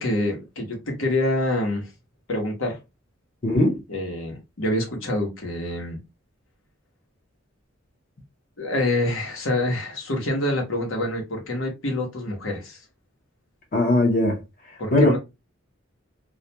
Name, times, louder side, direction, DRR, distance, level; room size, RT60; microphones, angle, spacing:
voice 1, 0.0-1.9 2.3-2.8 3.9-6.0 8.6-12.8 14.8-15.2, left 1 dB, 75° left, 0.9 m, -26 dB
voice 2, 3.4-3.8 13.7-14.4 14.9-15.2, left 1 dB, 45° left, 0.6 m, -19 dB
2.3 x 2.2 x 2.8 m
head